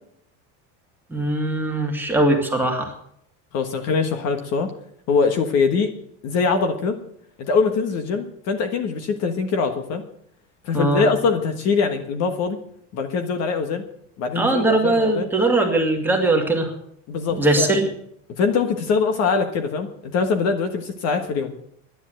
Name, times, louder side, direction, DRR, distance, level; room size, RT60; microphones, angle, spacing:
voice 1, 1.1-2.9 10.7-11.0 14.3-16.7 17.3-17.8, right 2 dB, 5° right, 0 dB, 2.1 m, -20 dB
voice 2, 3.5-4.7 5.1-5.9 6.2-6.9 7.4-10.0 10.6-12.6 12.9-13.8 14.2-15.3 17.1-17.7 18.4-21.5, left 5 dB, 45° left, 6 dB, 1.5 m, -22 dB
11.0 x 10.0 x 7.8 m, 0.71 s
cardioid pair, 155°, 35 cm